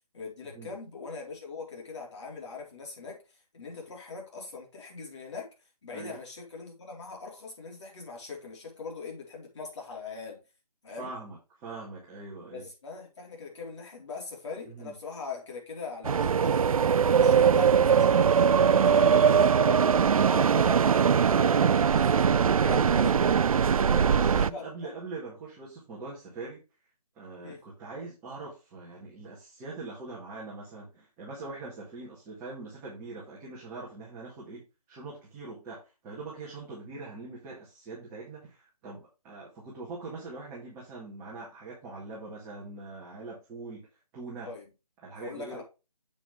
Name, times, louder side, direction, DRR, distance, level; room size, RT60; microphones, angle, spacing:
voice 1, 0.1-5.5 5.8-10.4 10.8-11.1 12.5-19.9 20.2-23.2 23.8-24.9 27.4-27.6 44.5-44.7 45.1-45.6, left 4 dB, 50° left, 4.0 m, -41 dB
voice 2, 11.0-12.7 14.6-14.9 23.7-26.6 27.1-34.6 34.9-43.9 44.1-44.5 45.0-45.6, right 3 dB, 10° right, 1.7 m, -42 dB
sound 1, 16.0-24.5, right 7 dB, 65° right, 0.4 m, -21 dB
7.5 x 7.0 x 3.3 m
hypercardioid pair, 165°, 20 cm